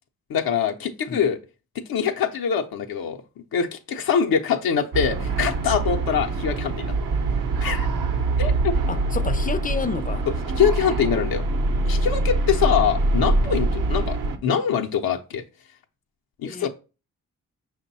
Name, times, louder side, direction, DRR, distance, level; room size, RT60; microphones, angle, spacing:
voice 1, 0.3-1.4 1.9-3.2 3.5-6.9 7.6-7.9 8.4-8.5 10.6-11.4 11.9-14.2 14.4-15.4 16.4-16.7, left 7 dB, 90° left, 0.5 m, -23 dB
sound 1, 4.9-14.4, right 2 dB, 65° right, 0.7 m, -24 dB
voice 2, 8.9-10.2 16.5-16.7, left 5 dB, 25° left, 0.3 m, -30 dB
5.2 x 2.1 x 4.0 m
cardioid pair, 45°, 35 cm